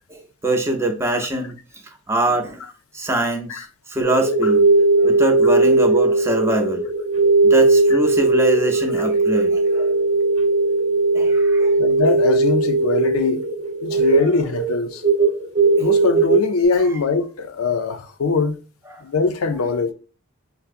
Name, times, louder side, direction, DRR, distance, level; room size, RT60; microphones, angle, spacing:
voice 1, 0.1-1.5 2.1-2.6 2.9-4.6 5.0-6.8 7.4-9.9 11.1-11.8 13.9-14.3 15.8-15.9 18.9-19.0, right 1 dB, 10° right, 0.5 m, -23 dB
sound 1, 4.0-16.4, right 2 dB, 65° right, 1.0 m, -18 dB
voice 2, 11.8-13.4 13.8-15.0 15.8-18.6 19.0-19.9, left 3 dB, 85° left, 0.5 m, -21 dB
5.6 x 2.0 x 2.4 m
head